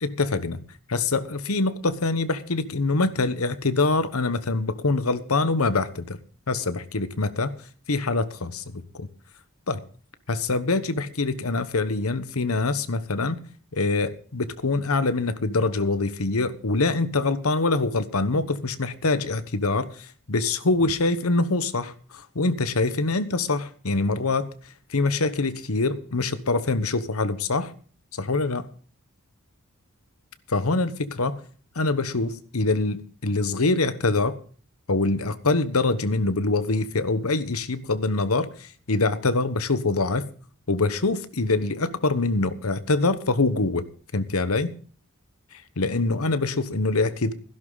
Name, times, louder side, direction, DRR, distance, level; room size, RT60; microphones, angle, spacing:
voice 1, 0.0-0.6 0.9-6.2 6.5-7.6 7.9-9.1 9.7-9.8 10.3-13.4 13.7-24.5 24.9-27.7 28.1-28.7 30.5-31.4 31.7-34.4 34.9-40.3 40.7-43.8 44.1-44.7 45.5-47.3, left 3 dB, 85° left, 1.2 m, -24 dB
16.0 x 11.5 x 4.0 m
head